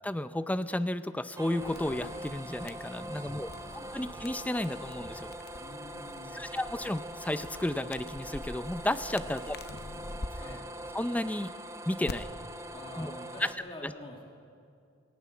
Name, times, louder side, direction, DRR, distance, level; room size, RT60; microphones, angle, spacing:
voice 1, 0.0-3.5 3.7-5.3 6.3-9.5 10.9-11.5 11.9-12.3 13.0-13.1 13.4-13.5 13.8-13.9, left 1 dB, 5° left, 12 dB, 0.5 m, -32 dB
sound 1, 1.4-13.5, right 1 dB, 15° right, 0.9 m, -43 dB
sound 2, 1.6-10.3 12.1-12.2, left 2 dB, 50° left, 0.9 m, -46 dB
voice 2, 2.9-4.0 5.6-6.5 9.2-9.4 10.4-10.7 12.7-14.3, left 1 dB, 25° left, -1 dB, 2.3 m, -47 dB
17.5 x 16.5 x 9.5 m, 2.3 s
head